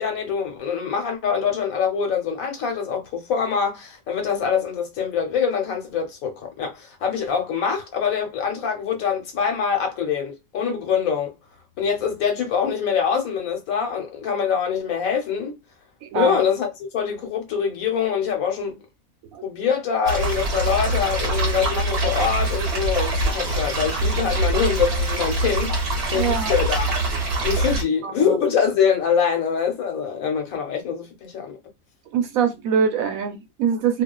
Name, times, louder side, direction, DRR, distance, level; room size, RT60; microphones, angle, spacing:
voice 1, 0.0-11.3 11.8-15.6 16.1-18.8 19.4-25.8 26.1-26.9 27.4-31.6, left 7 dB, 75° left, 1.2 m, -24 dB
sound 1, 20.1-27.8, right 1 dB, 50° right, 0.9 m, -24 dB
voice 2, 26.1-26.5 28.0-28.4 32.1-34.0, right 7 dB, 75° right, 1.1 m, -23 dB
2.4 x 2.4 x 2.2 m
omnidirectional pair, 1.5 m